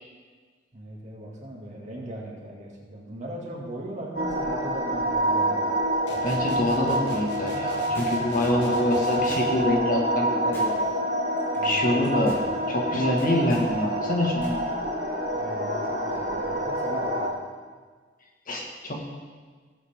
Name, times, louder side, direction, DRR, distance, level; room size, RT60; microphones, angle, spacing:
voice 1, 0.7-5.6 11.6-12.3 15.3-17.3, right 1 dB, 40° right, -2 dB, 2.2 m, -38 dB
sound 1, 4.1-17.3, right 1 dB, 55° right, 2.6 m, -27 dB
sound 2, 6.1-9.6, left 1 dB, 65° left, 1.4 m, -42 dB
voice 2, 6.2-10.8 11.6-12.4 12.7-14.7 18.5-19.0, left 1 dB, 45° left, 0 dB, 1.7 m, -26 dB
sound 3, 7.9-8.5 9.3-9.8 10.5-11.0 11.4-11.6 12.0-12.5 13.2-13.7 14.4-14.6 14.9-15.0, equal, 15° left, 2.4 m, -44 dB
18.0 x 8.1 x 3.6 m, 1.5 s
head